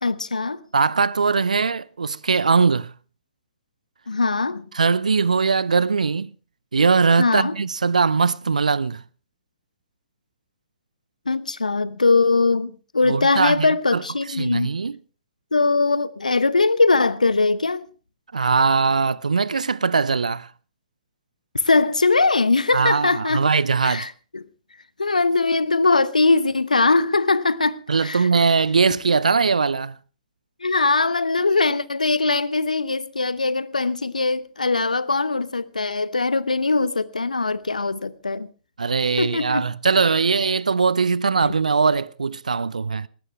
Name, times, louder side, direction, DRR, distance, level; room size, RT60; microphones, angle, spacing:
voice 1, 0.0-0.6 4.1-4.6 7.2-7.5 11.3-14.7 15.5-17.8 21.6-23.5 23.8-24.4 25.0-28.3 30.6-38.5 39.2-39.6 41.4-41.5, left 3 dB, 85° left, 1.0 m, -21 dB
voice 2, 0.7-2.9 4.7-6.3 6.7-9.0 13.0-14.0 14.3-15.0 18.3-20.5 22.7-24.1 27.9-30.0 38.8-43.1, right 5 dB, 80° right, 0.7 m, -20 dB
21.0 x 17.5 x 3.3 m
figure-of-eight pair, 115°, 4 cm